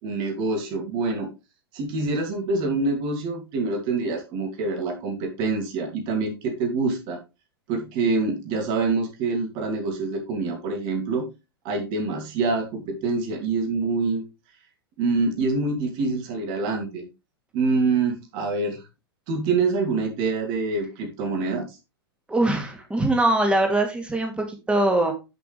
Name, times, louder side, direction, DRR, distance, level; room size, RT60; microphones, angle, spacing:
voice 1, 0.0-1.3 1.7-7.2 7.7-11.3 11.6-14.2 15.0-17.1 17.5-18.8 19.3-21.8, right 3 dB, 40° right, 3 dB, 2.6 m, -26 dB
voice 2, 22.3-25.1, right 2 dB, 10° right, 4 dB, 2.5 m, -22 dB
10.5 x 6.0 x 3.4 m, 0.26 s
figure-of-eight pair, 100°, 13 cm